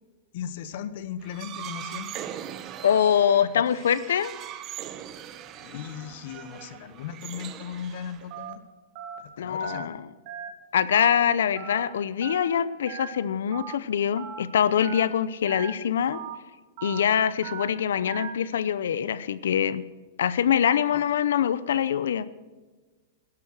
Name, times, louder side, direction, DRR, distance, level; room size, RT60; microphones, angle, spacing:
voice 1, 0.3-2.2 3.7-3.8 5.6-8.6 9.2-10.0 20.9-21.0, left 8 dB, 60° left, 13 dB, 1.2 m, -37 dB
sound 1, 1.2-8.5, right 10 dB, 30° right, 0.9 m, -40 dB
voice 2, 2.8-4.3 9.4-10.1 10.7-16.2 16.8-19.9 20.2-22.3, left 8 dB, 85° left, 17 dB, 0.7 m, -24 dB
Telephone, 8.3-8.5 9.0-9.2 9.6-9.8 10.3-10.5 10.9-11.1 11.6-11.8 12.2-12.4 12.9-13.1 13.5-13.7 14.2-14.4 14.8-15.1 15.5-15.7 16.1-16.4 16.8-17.0 17.4-17.7 18.1-18.3, right 9 dB, 50° right, 2.3 m, -38 dB
12.0 x 11.0 x 6.2 m, 1.3 s
supercardioid pair, 145°, 0 cm